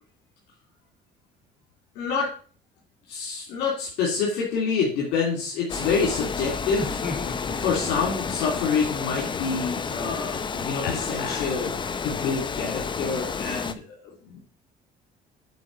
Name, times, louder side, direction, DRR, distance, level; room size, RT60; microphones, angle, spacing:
voice 1, 1.9-2.3 3.1-7.0 7.6-11.7 12.0-14.0, left 5 dB, 90° left, -2 dB, 2.8 m, -27 dB
Water, 5.7-13.7, left 5 dB, 30° left, 0.7 m, -31 dB
Laughter, 6.7-12.1, left 4 dB, 65° left, 2.4 m, -37 dB
8.4 x 4.7 x 7.4 m, 0.41 s
cardioid pair, 110°, 17 cm